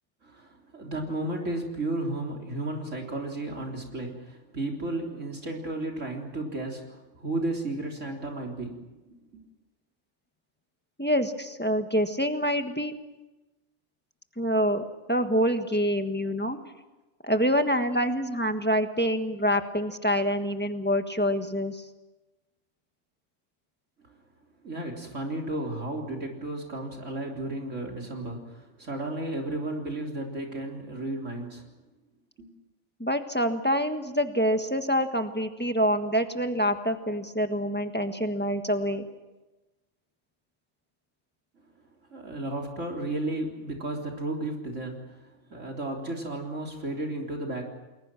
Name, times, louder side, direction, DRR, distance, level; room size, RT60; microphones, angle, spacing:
voice 1, 0.2-8.8 9.1-9.4 24.6-31.6 32.4-32.5 42.1-47.6, right 2 dB, 80° right, 1 dB, 3.9 m, -33 dB
voice 2, 11.0-12.9 14.4-16.6 17.2-21.8 33.0-39.0, equal, 10° left, 6 dB, 1.5 m, -26 dB
30.0 x 21.0 x 6.1 m, 1.1 s
omnidirectional pair, 1.3 m